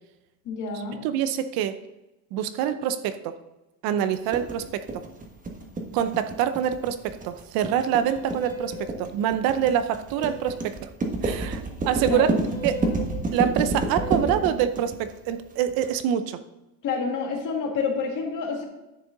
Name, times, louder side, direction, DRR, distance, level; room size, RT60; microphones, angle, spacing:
voice 1, 0.5-1.0 12.1-12.4 16.8-18.6, left 5 dB, 45° left, 1 dB, 2.1 m, -28 dB
voice 2, 1.0-1.8 2.3-3.3 3.8-5.0 5.9-10.9 11.2-12.3 12.6-12.9 13.3-16.4, right 9 dB, 55° right, 11 dB, 0.6 m, -25 dB
sound 1, 4.3-15.9, right 3 dB, 20° right, 1.3 m, -29 dB
sound 2, 8.0-8.9 10.1-10.7 12.4-13.1 13.9-14.6, left 1 dB, 15° left, 2.9 m, -38 dB
10.5 x 6.6 x 3.8 m, 0.97 s
cardioid pair, 135°, 44 cm